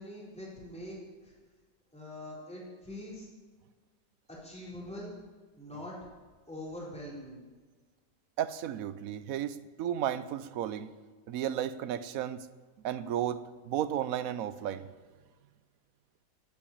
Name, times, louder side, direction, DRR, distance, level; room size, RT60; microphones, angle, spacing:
voice 1, 0.0-1.3 1.9-3.3 4.3-5.1 5.6-5.9 6.5-7.4, left 1 dB, 5° left, -6 dB, 4.2 m, -43 dB
voice 2, 8.4-10.9 11.3-12.5 12.8-14.9, right 10 dB, 65° right, 14 dB, 1.0 m, -33 dB
12.5 x 9.2 x 8.6 m, 1.4 s
omnidirectional pair, 1.8 m